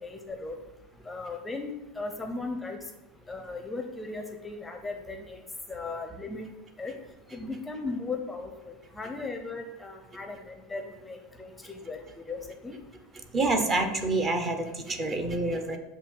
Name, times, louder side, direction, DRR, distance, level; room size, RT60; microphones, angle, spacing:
voice 1, 0.0-0.6 1.1-2.8 3.3-5.4 5.7-6.5 6.8-6.9 7.3-12.8, left 3 dB, 10° left, 5 dB, 0.6 m, -37 dB
voice 2, 13.3-15.8, right 2 dB, 30° right, 6 dB, 0.8 m, -27 dB
7.3 x 2.7 x 5.4 m, 1.0 s
supercardioid pair, 125°, 0 cm